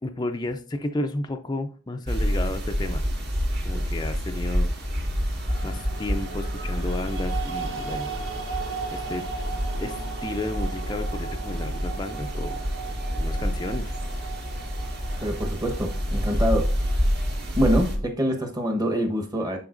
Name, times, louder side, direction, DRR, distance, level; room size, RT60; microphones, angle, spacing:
voice 1, 0.0-3.0 3.6-4.7 5.6-8.1 8.9-9.3 9.8-12.6 13.1-14.2, left 2 dB, 20° left, 5 dB, 0.4 m, -32 dB
sound 1, 2.1-18.0, equal, 50° right, 1.7 m, -28 dB
sound 2, 5.5-17.7, right 5 dB, 65° right, 1.1 m, -38 dB
voice 2, 15.2-16.8 17.6-19.6, equal, 20° right, 4 dB, 1.0 m, -25 dB
10.5 x 4.5 x 2.5 m, 0.39 s
head